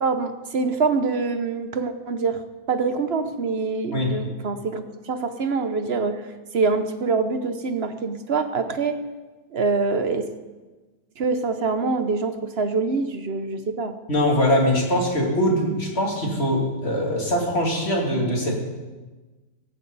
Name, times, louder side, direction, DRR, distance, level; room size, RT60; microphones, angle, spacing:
voice 1, 0.0-2.4 2.7-6.3 6.5-9.0 9.5-10.3 11.2-13.9, right 4 dB, 45° right, 9 dB, 0.9 m, -25 dB
voice 2, 14.1-18.5, equal, 35° left, -1 dB, 3.1 m, -22 dB
17.5 x 16.5 x 4.1 m, 1.2 s
omnidirectional pair, 1.9 m